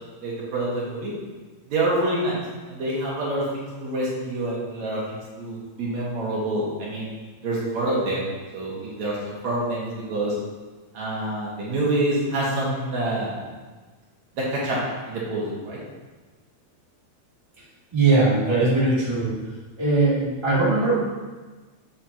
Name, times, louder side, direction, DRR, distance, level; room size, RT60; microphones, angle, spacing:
voice 1, 0.2-1.1 1.7-2.4 2.7-7.1 7.4-9.2 9.4-10.4 10.9-13.4 14.4-14.8 15.1-15.8, right 1 dB, 70° right, -5 dB, 2.9 m, -27 dB
voice 2, 17.9-19.3 19.8-20.9, right 3 dB, 10° right, -9 dB, 2.1 m, -20 dB
8.2 x 7.5 x 2.9 m, 1.3 s
omnidirectional pair, 3.3 m